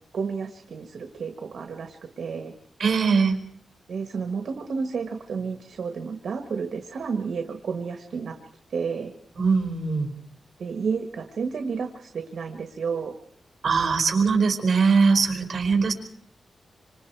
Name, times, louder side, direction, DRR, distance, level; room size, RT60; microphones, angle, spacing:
voice 1, 0.1-2.5 3.9-8.4 8.7-9.1 10.6-13.1, right 5 dB, 70° right, 6 dB, 1.5 m, -31 dB
voice 2, 2.8-3.4 9.4-10.1 13.6-15.9, right 5 dB, 55° right, 5 dB, 4.7 m, -21 dB
26.5 x 26.0 x 4.7 m, 0.65 s
wide cardioid pair, 130°, 0 cm